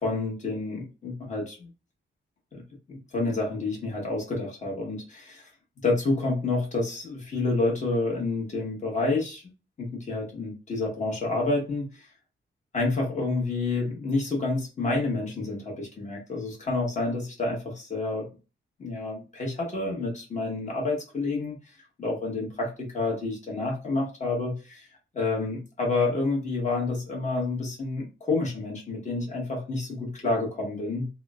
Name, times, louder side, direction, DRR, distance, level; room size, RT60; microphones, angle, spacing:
voice 1, 0.0-1.7 2.5-2.6 2.9-5.5 5.8-9.4 9.8-12.0 12.7-18.3 18.8-21.5 22.0-24.9 25.1-31.1, left 3 dB, 35° left, -2 dB, 1.0 m, -29 dB
3.0 x 2.0 x 2.2 m, 0.32 s
wide cardioid pair, 165°, 21 cm